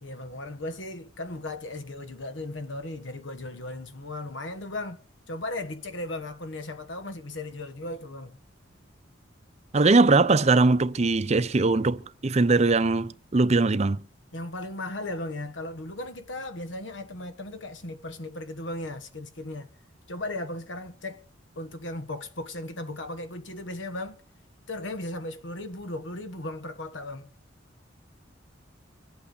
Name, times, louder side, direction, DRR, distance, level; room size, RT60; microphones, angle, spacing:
voice 1, 0.0-5.0 5.3-8.4 14.3-19.7 20.1-21.2 21.6-24.2 24.7-27.3, left 2 dB, 75° left, 1.4 m, -36 dB
voice 2, 9.7-14.0, right 3 dB, 35° right, 0.6 m, -21 dB
25.0 x 8.6 x 4.0 m
head